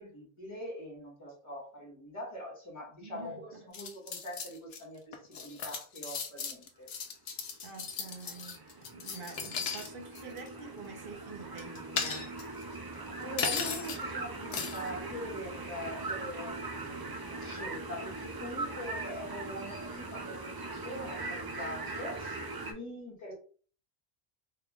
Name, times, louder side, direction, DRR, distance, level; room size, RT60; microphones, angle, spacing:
voice 1, 0.0-6.9 13.2-23.3, equal, 30° left, 1.6 m, -43 dB
voice 2, 3.0-3.6 7.6-12.3, right 5 dB, 60° right, 0.9 m, -47 dB
sound 1, 3.7-4.8 5.1-9.9 10.1-10.5 11.6-12.6 13.4-14.0 14.5-14.9, left 6 dB, 75° left, 0.9 m, -36 dB
sound 2, 7.7-22.7, right 3 dB, 40° right, 0.3 m, -40 dB
3.5 x 3.5 x 2.3 m
omnidirectional pair, 1.1 m